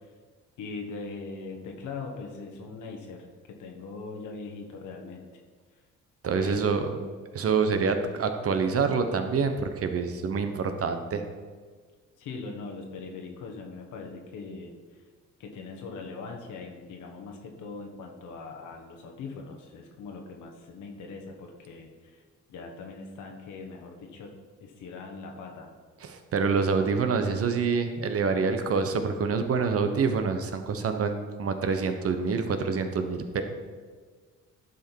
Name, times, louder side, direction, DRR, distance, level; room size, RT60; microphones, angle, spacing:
voice 1, 0.6-5.2 6.3-7.2 12.2-15.0 15.4-22.2 22.5-24.3 24.6-25.7, left 4 dB, 80° left, 1 dB, 1.3 m, -41 dB
voice 2, 6.2-6.8 7.3-11.2 26.1-33.4, right 5 dB, 50° right, 7 dB, 1.0 m, -26 dB
11.0 x 5.1 x 4.6 m, 1.5 s
cardioid pair, 90°, 30 cm